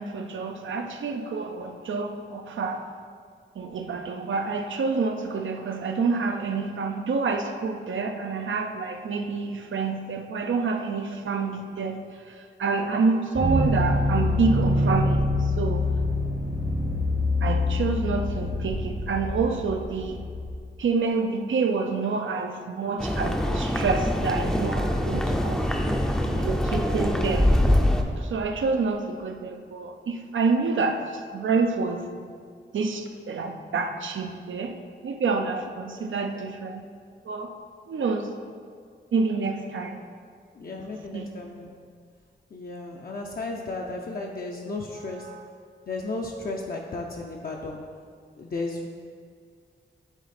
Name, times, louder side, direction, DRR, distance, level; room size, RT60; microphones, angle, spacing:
voice 1, 0.0-2.8 3.6-12.0 12.3-15.9 17.4-20.2 20.8-26.0 26.3-27.5 28.2-32.3 32.7-34.8 35.0-36.9 37.3-37.5 37.9-38.3 39.1-40.0 40.7-41.3 45.3-45.4, right 4 dB, 85° right, 5 dB, 0.6 m, -28 dB
sound 1, 13.4-20.6, left 2 dB, 40° right, 0.8 m, -25 dB
sound 2, 23.0-28.0, left 1 dB, 5° left, 0.5 m, -24 dB
voice 2, 27.0-27.5 40.5-41.7 42.5-45.3 45.9-47.8 48.4-48.9, left 3 dB, 50° left, 0 dB, 0.5 m, -34 dB
10.5 x 4.0 x 4.2 m, 2.1 s
wide cardioid pair, 165°, 19 cm